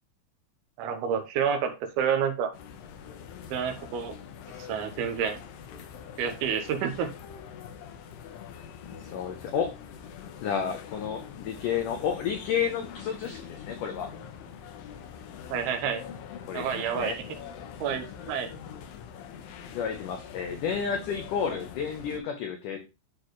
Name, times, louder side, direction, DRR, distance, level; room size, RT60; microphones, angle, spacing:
voice 1, 0.8-2.5 3.5-4.1 4.7-5.4 6.2-7.1 15.5-16.0 16.5-17.3 17.8-18.5, right 7 dB, 75° right, 6 dB, 2.7 m, -29 dB
sound 1, 2.5-22.2, left 8 dB, 70° left, 2.3 m, -44 dB
voice 2, 9.1-9.8 10.4-14.1 16.5-17.2 19.7-22.8, left 7 dB, 85° left, 5 dB, 1.8 m, -31 dB
11.5 x 4.2 x 3.1 m, 0.27 s
omnidirectional pair, 5.0 m